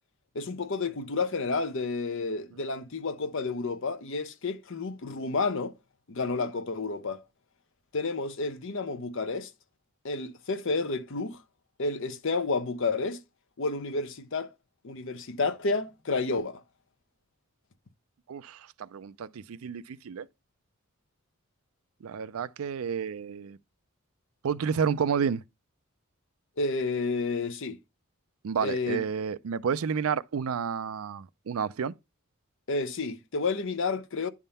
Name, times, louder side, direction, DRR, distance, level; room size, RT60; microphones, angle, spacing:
voice 1, 0.3-5.7 6.1-7.2 7.9-9.5 10.0-11.4 11.8-13.2 13.6-14.5 14.8-16.6 26.6-27.8 28.6-29.0 32.7-34.3, left 3 dB, 60° left, 0.7 m, -30 dB
voice 2, 18.3-20.3 22.0-23.6 24.4-25.4 28.4-31.9, right 6 dB, 70° right, 0.4 m, -30 dB
9.9 x 3.6 x 5.5 m
head